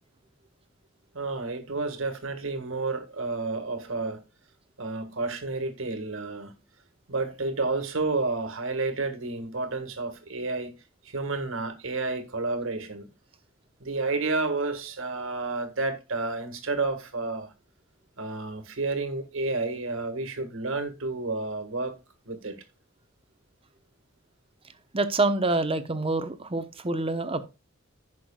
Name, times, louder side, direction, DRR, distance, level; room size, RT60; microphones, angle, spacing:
voice 1, 1.1-4.2 4.8-6.6 7.1-10.8 11.0-13.1 13.8-17.5 18.2-22.0 22.3-22.6, right 3 dB, 85° right, 1.7 m, -30 dB
voice 2, 24.9-27.5, right 2 dB, 30° right, 0.9 m, -26 dB
15.5 x 6.0 x 2.3 m
head